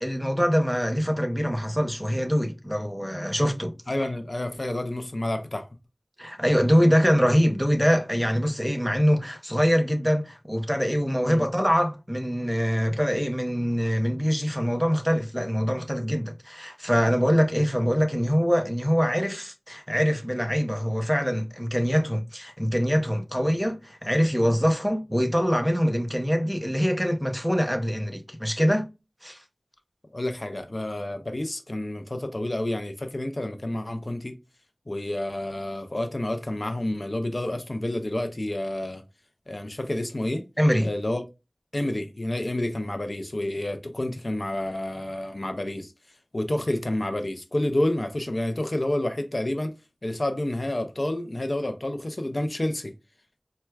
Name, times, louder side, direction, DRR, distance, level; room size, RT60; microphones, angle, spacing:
voice 1, 0.0-3.8 6.2-28.9 29.2-29.4 40.6-40.9, equal, ahead, 0.6 m, -24 dB
voice 2, 3.9-5.7 11.2-11.5 30.1-34.4 34.9-39.0 39.5-40.4 40.8-41.2 41.7-45.9 46.3-49.8 50.0-52.9, left 1 dB, 45° left, 0.5 m, -29 dB
4.3 x 2.2 x 2.3 m
wide cardioid pair, 50°, 0 cm